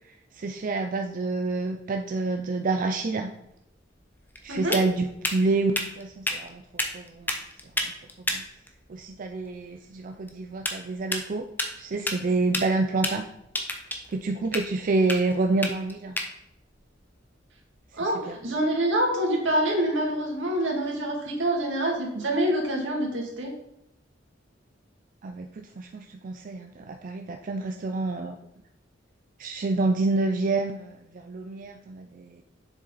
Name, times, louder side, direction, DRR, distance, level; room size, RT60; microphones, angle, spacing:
voice 1, 0.3-3.3 4.4-7.3 7.8-7.9 8.3-8.4 8.9-11.5 11.8-13.3 14.1-16.2 18.3-18.4 25.2-28.4 29.4-32.4, right 3 dB, 45° right, 5 dB, 0.4 m, -28 dB
sound 1, 3.4-18.1, left 1 dB, 10° left, 0.8 m, -35 dB
voice 2, 18.0-23.5, right 1 dB, 80° right, -1 dB, 2.3 m, -26 dB
7.2 x 6.6 x 4.0 m, 0.82 s
head